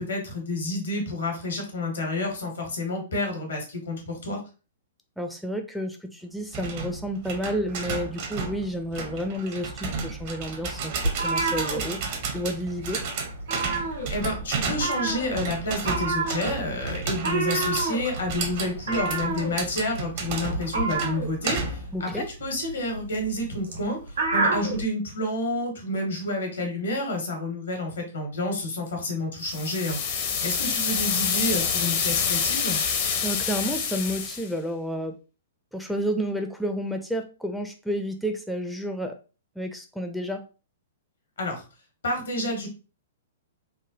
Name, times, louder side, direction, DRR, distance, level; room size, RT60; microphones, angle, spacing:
voice 1, 0.0-4.4 14.1-24.0 24.3-32.8 41.4-41.6 42.0-42.7, left 1 dB, 75° left, 3 dB, 1.2 m, -29 dB
voice 2, 5.2-12.0 12.3-13.0 21.9-22.3 33.2-35.1 35.7-39.1 39.6-40.4, equal, ahead, 4 dB, 0.4 m, -30 dB
sound 1, 6.5-22.0, right 4 dB, 50° right, 0.6 m, -33 dB
sound 2, 11.0-12.5 12.8-13.0 13.3-14.4 14.7-24.8, right 3 dB, 80° right, 1.4 m, -29 dB
sound 3, 29.4-34.5, left 6 dB, 45° left, 0.6 m, -26 dB
3.3 x 2.1 x 2.7 m, 0.33 s
figure-of-eight pair, 110°, 0 cm